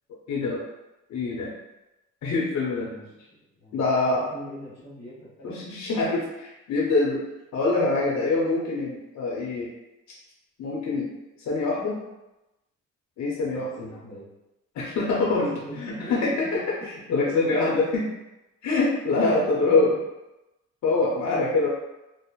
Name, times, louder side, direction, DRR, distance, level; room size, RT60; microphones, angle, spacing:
voice 1, 0.3-0.6 1.1-1.5 2.2-3.0 3.7-4.3 5.4-6.2 6.7-7.2 7.5-9.7 10.6-11.1 11.4-12.0 13.2-13.9 14.7-18.0 18.6-19.9 20.8-21.7, left 3 dB, 65° left, -3 dB, 0.7 m, -24 dB
voice 2, 4.3-6.2 7.6-7.9 13.5-14.2 15.2-16.3 17.3-17.8 19.3-19.5, equal, 40° left, -9 dB, 1.2 m, -42 dB
2.9 x 2.0 x 2.4 m, 0.97 s
cardioid pair, 90°, 30 cm